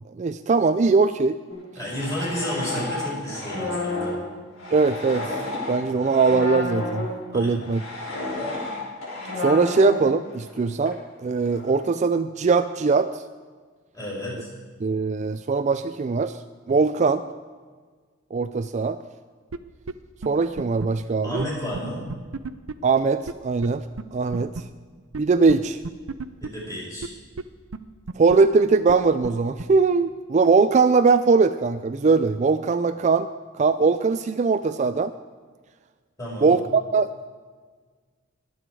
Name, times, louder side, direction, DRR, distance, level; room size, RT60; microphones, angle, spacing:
voice 1, 0.2-1.4 4.7-7.8 9.4-13.2 14.8-16.3 16.7-17.2 18.3-19.0 20.3-21.5 22.8-23.8 24.1-24.5 25.2-25.8 28.2-33.3 33.6-35.1 36.4-37.3, right 4 dB, 35° right, 10 dB, 0.4 m, -21 dB
sound 1, 1.5-7.2 7.6-10.6 10.8-10.9 11.5-11.8, left 2 dB, 85° left, 4.4 m, -31 dB
voice 2, 1.8-4.1 7.3-7.6 13.9-14.5 21.2-22.0 26.4-27.1 36.2-36.6, equal, 15° left, -5 dB, 5.2 m, -31 dB
sound 2, 19.5-19.6 19.9-20.0 20.2-20.3 20.6-20.9 21.4-21.5 21.7-21.8 22.1-22.7 23.3-23.4 23.6-23.7 24.0-24.1 24.3-24.6 25.1-25.2 25.5-25.6 25.8-26.5 27.0-27.1 27.4-27.5 27.7-27.8 28.1-28.4 28.9-29.0 29.2-29.3 29.6-29.7, right 4 dB, 85° right, 0.6 m, -32 dB
21.5 x 8.0 x 4.7 m, 1.5 s
head